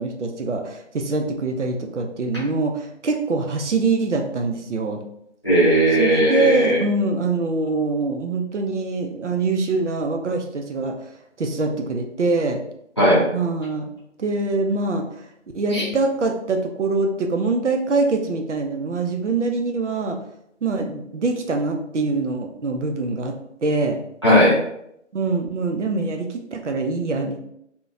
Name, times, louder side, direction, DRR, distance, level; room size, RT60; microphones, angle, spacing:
voice 1, 0.0-5.0 6.0-11.0 11.4-12.6 13.3-13.9 14.2-15.1 15.5-20.2 20.6-23.3 23.6-24.0 25.1-27.4, right 3 dB, 70° right, 3 dB, 0.5 m, -24 dB
voice 2, 5.4-6.8 13.0-13.2 15.7-15.8 24.2-24.6, equal, 20° left, -9 dB, 0.6 m, -16 dB
2.7 x 2.1 x 2.4 m, 0.76 s
figure-of-eight pair, 155°, 37 cm